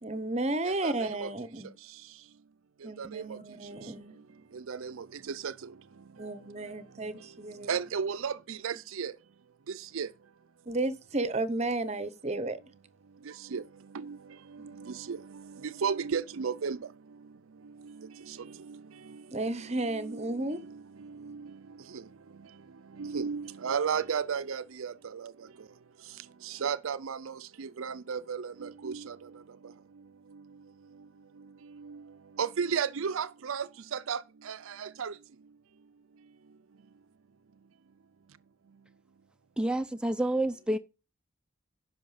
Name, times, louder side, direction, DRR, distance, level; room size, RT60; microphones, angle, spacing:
voice 1, 0.0-1.7 2.8-4.2 6.2-7.7 10.7-12.6 14.6-14.8 19.3-20.6, right 2 dB, 30° right, 0.8 m, -33 dB
voice 2, 4.7-5.0 5.4-5.5 7.7-9.1 9.9-10.1 13.5-13.6 13.9-14.2 15.1-15.2 15.8-16.8 20.1-20.2 21.3-21.4 23.0-24.9 26.6-27.3 27.6-29.2 32.4-33.6 34.1-34.2 34.5-35.1, right 6 dB, 75° right, 0.5 m, -32 dB
voice 3, 39.6-40.8, right 1 dB, 5° right, 0.5 m, -28 dB
10.5 x 5.7 x 5.6 m
head